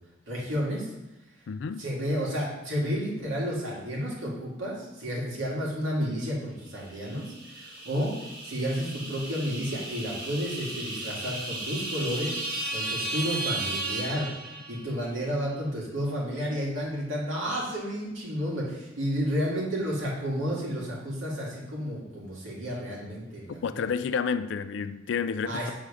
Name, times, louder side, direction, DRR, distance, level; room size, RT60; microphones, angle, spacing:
voice 1, 0.3-0.9 1.8-8.2 8.4-12.4 12.7-14.3 14.7-23.9 25.4-25.7, equal, 80° right, 2.1 m, -31 dB
voice 2, 1.5-1.9 23.6-25.7, left 6 dB, 60° left, 0.3 m, -30 dB
sound 1, 7.0-15.0, right 2 dB, 50° right, 1.5 m, -35 dB
7.1 x 3.7 x 4.9 m
head